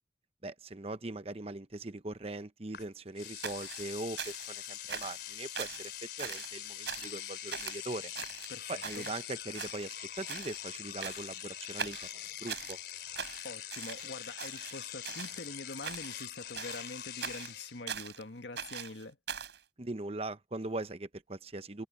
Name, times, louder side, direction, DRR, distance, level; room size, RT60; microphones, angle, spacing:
voice 1, 0.4-5.9 6.2-8.1 8.7-12.0 12.4-12.8 19.8-21.9, right 2 dB, 35° right, 0.9 m, -40 dB
Engine / Domestic sounds home sounds, 2.7-2.9 3.2-17.8, left 11 dB, 65° left, 3.7 m, -43 dB
sound 1, 3.4-4.6 4.9-5.3 5.6-5.9 6.2-6.6 6.9-7.2 7.5-7.8 8.2-9.2 9.5-10.0 10.3-10.6 11.0-11.4 11.8-12.8 13.2-14.1 14.4-15.4 15.8-16.3 16.6-18.2 18.6-19.6, right 7 dB, 80° right, 4.6 m, -41 dB
voice 2, 8.5-9.1 13.4-19.2, left 2 dB, 80° left, 1.9 m, -45 dB
head